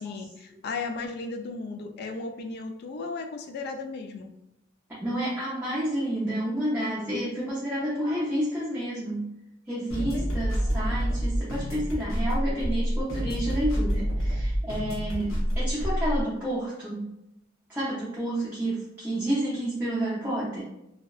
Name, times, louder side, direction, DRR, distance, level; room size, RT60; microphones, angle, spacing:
voice 1, 0.0-4.3 10.0-10.8, left 3 dB, 55° left, 4 dB, 0.3 m, -36 dB
voice 2, 5.0-9.3 9.7-17.1 17.7-20.6, right 1 dB, 10° right, -9 dB, 0.5 m, -30 dB
sound 1, 9.9-16.2, equal, 90° left, 0.8 m, -27 dB
2.6 x 2.1 x 2.3 m, 0.87 s
head